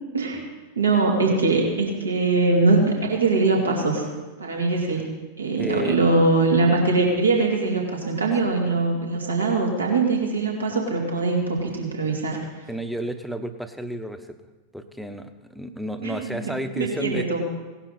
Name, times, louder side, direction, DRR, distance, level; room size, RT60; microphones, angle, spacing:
voice 1, 0.8-4.0 4.4-5.1 5.4-12.4 16.0-16.4 16.8-17.4, right 3 dB, 75° right, 0 dB, 2.4 m, -22 dB
voice 2, 5.6-6.0 12.7-14.4 14.7-17.3, right 1 dB, ahead, 8 dB, 0.9 m, -31 dB
17.5 x 11.5 x 4.2 m, 1.2 s
figure-of-eight pair, 90°, 0 cm